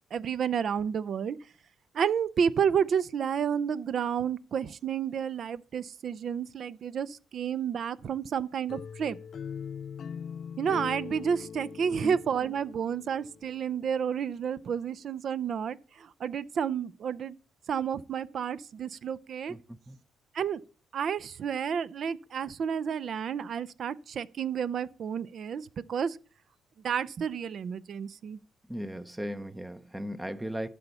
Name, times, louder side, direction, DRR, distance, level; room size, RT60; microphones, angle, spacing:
voice 1, 0.1-1.4 1.9-9.2 10.6-17.4 17.7-19.5 20.3-20.6 20.9-26.2 26.8-28.4, right 7 dB, 60° right, 0.5 m, -30 dB
sound 1, 8.7-13.6, left 7 dB, 55° left, 0.4 m, -41 dB
voice 2, 19.5-20.0 28.7-30.7, equal, 10° right, 0.6 m, -37 dB
12.5 x 4.2 x 6.8 m
cardioid pair, 90°, 0 cm